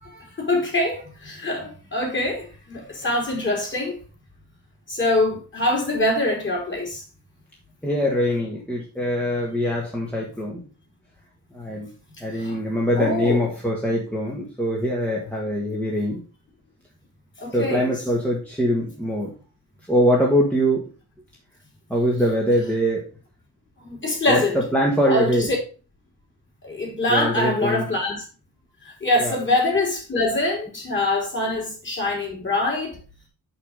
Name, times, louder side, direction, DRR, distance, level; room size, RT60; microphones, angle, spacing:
voice 1, 0.0-4.0 4.9-7.0 12.4-12.6 13.0-13.5 17.4-17.9 23.8-24.6 25.0-25.6 26.6-28.2 28.8-33.0, left 2 dB, 25° left, 3.5 m, -24 dB
voice 2, 7.8-10.6 11.5-11.9 12.2-16.2 17.5-19.3 19.9-20.9 21.9-23.1 24.3-24.4 24.7-25.5 27.1-27.8 29.2-29.4, equal, 5° left, 1.5 m, -23 dB
5.9 x 5.8 x 5.0 m
cardioid pair, 130°, 42 cm